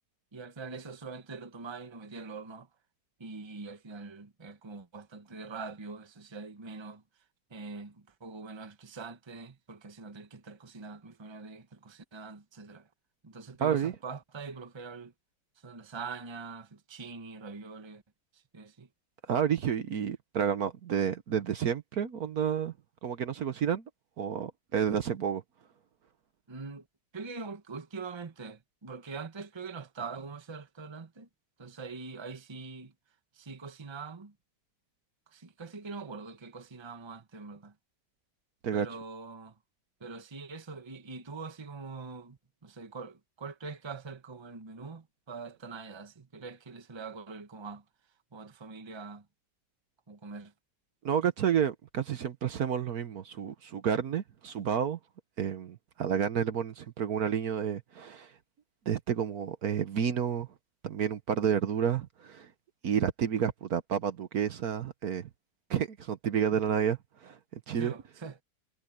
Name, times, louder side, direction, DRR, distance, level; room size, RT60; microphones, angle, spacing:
voice 1, 0.3-2.7 3.2-7.0 7.5-12.9 13.2-15.1 15.6-18.0 18.3-18.9 19.6-19.7 26.5-26.9 27.1-31.3 31.6-32.9 33.3-34.3 35.3-37.7 38.7-39.5 40.0-47.8 48.3-49.2 50.1-50.5 67.7-68.4, right 4 dB, 20° right, 1.1 m, -43 dB
voice 2, 13.6-13.9 19.3-22.7 23.0-23.8 24.2-25.4 38.6-38.9 51.0-55.0 55.4-58.3 58.9-60.5 60.8-62.5 62.8-65.3 65.7-67.4 67.7-67.9, right 8 dB, 60° right, 1.4 m, -30 dB
omnidirectional pair, 1.9 m